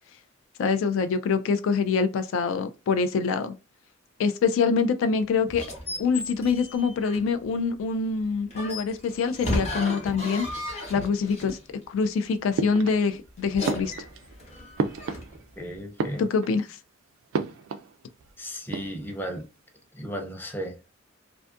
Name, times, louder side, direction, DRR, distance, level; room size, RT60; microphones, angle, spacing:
voice 1, 0.6-3.5 4.2-5.7 6.0-10.5 10.9-11.6 11.9-13.9 16.2-16.8, left 5 dB, 75° left, 0.3 m, -25 dB
sound 1, 5.5-7.4 8.5-11.6 13.4-15.4, left 1 dB, 35° left, 0.8 m, -34 dB
sound 2, 12.6-13.3 13.6-15.6 15.9-16.7 17.3-17.9 18.2-18.3 18.6-19.3, right 4 dB, 70° right, 0.3 m, -32 dB
voice 2, 15.6-16.3 18.4-19.5 19.9-20.9, equal, 10° left, 0.4 m, -35 dB
2.5 x 2.3 x 2.4 m
head